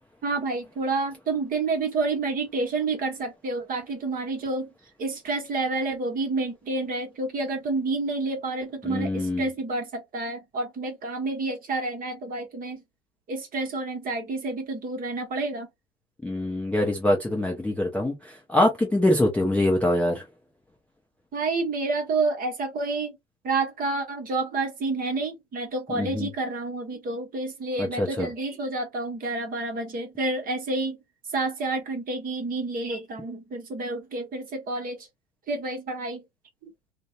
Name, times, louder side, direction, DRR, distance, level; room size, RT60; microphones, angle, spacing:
voice 1, 0.2-4.7 5.0-12.8 13.3-15.7 21.3-23.2 23.4-31.0 31.3-35.1 35.5-36.2 36.6-36.7, right 3 dB, 25° right, 0.9 m, -29 dB
voice 2, 8.9-9.4 16.2-18.1 18.5-20.2 25.9-26.3 27.8-28.3, left 1 dB, 5° left, 0.5 m, -24 dB
2.6 x 2.1 x 2.3 m
hypercardioid pair, 95°, 33 cm